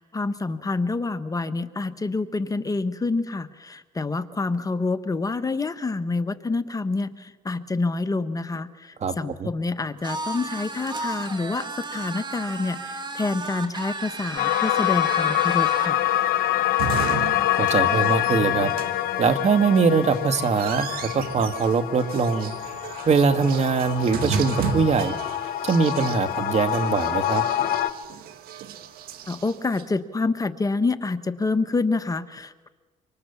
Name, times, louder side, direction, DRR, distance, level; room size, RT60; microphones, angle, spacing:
voice 1, 0.0-16.0 29.3-32.7, left 3 dB, 25° left, 10 dB, 1.2 m, -27 dB
voice 2, 9.0-9.5 17.6-18.7 19.2-20.9 21.1-22.5 23.1-25.1 25.6-27.4, right 5 dB, 50° right, 9 dB, 1.9 m, -22 dB
sound 1, 10.0-15.9, right 3 dB, 30° right, 3.0 m, -34 dB
sound 2, 14.4-27.9, left 13 dB, 75° left, 1.1 m, -25 dB
sound 3, 15.5-29.8, right 6 dB, 80° right, 1.8 m, -35 dB
25.5 x 25.5 x 7.1 m, 1.3 s
cardioid pair, 90°, 15 cm